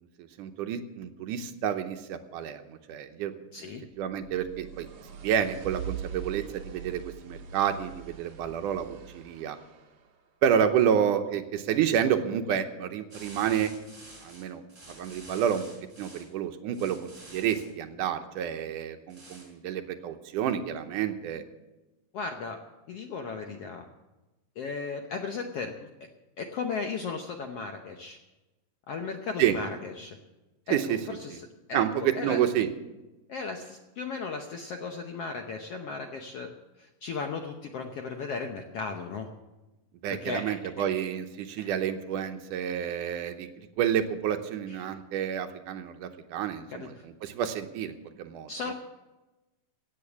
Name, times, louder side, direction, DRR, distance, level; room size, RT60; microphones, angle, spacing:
voice 1, 0.4-3.3 4.0-4.9 5.2-9.6 10.4-13.7 14.2-14.6 14.9-15.6 16.0-21.4 29.4-29.6 30.7-31.0 31.3-31.4 31.7-32.7 40.0-43.5 43.8-46.9 47.2-48.7, right 9 dB, 75° right, 7 dB, 2.3 m, -29 dB
voice 2, 3.5-3.9 22.1-22.6 22.9-23.8 24.6-25.9 26.4-28.2 28.9-30.2 30.7-32.4 33.3-36.5 36.8-39.3 40.1-40.6 41.6-41.7 44.7-44.9 46.7-47.0 48.5-48.7, left 4 dB, 70° left, 4 dB, 1.5 m, -36 dB
sound 1, 4.0-10.1, right 8 dB, 55° right, 2.5 m, -42 dB
sound 2, 13.1-16.3 16.7-17.7 19.1-19.5, right 1 dB, 10° right, 4.4 m, -49 dB
16.5 x 8.6 x 7.1 m, 1.1 s
omnidirectional pair, 3.9 m